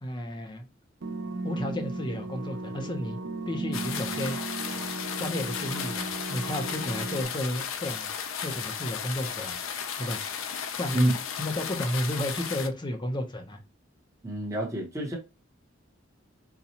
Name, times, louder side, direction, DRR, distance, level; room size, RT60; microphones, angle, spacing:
voice 1, 0.0-0.6 1.4-3.2 3.5-4.4 5.2-8.1 8.4-9.6 10.0-10.2 10.8-13.6, left 1 dB, 25° left, 0.7 m, -32 dB
sound 1, 1.0-7.2, right 2 dB, 65° right, 0.5 m, -36 dB
sound 2, 3.7-12.7, left 7 dB, 85° left, 0.5 m, -35 dB
voice 2, 14.2-15.2, right 1 dB, 15° right, 0.9 m, -28 dB
4.0 x 2.3 x 2.8 m
head